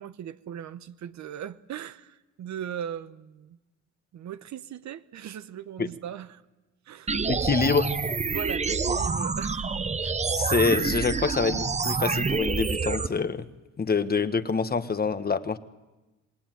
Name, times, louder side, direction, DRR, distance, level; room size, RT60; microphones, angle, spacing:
voice 1, 0.0-3.6 4.1-6.4 6.9-7.2 8.3-9.7, right 9 dB, 65° right, 1.0 m, -38 dB
sound 1, 7.1-13.1, right 4 dB, 25° right, 0.8 m, -27 dB
voice 2, 7.3-7.9 10.0-13.5 13.8-15.6, left 4 dB, 30° left, 1.3 m, -26 dB
26.0 x 20.0 x 9.2 m
cardioid pair, 90°, 30 cm